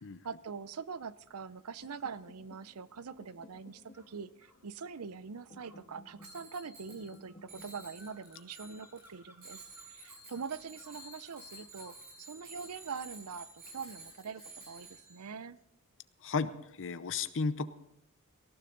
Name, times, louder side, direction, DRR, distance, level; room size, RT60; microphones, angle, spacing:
voice 1, 0.2-15.6, right 5 dB, 75° right, 16 dB, 0.6 m, -43 dB
sound 1, 1.8-9.7, left 1 dB, 30° left, 1.8 m, -59 dB
sound 2, 3.9-4.6 5.5-12.1, equal, 10° right, 1.9 m, -62 dB
Bicycle bell, 6.2-7.2 7.5-9.1 9.4-15.3, right 2 dB, 45° right, 7.5 m, -52 dB
voice 2, 16.2-17.7, left 4 dB, 60° left, 11 dB, 0.7 m, -34 dB
18.5 x 15.0 x 3.9 m, 0.81 s
head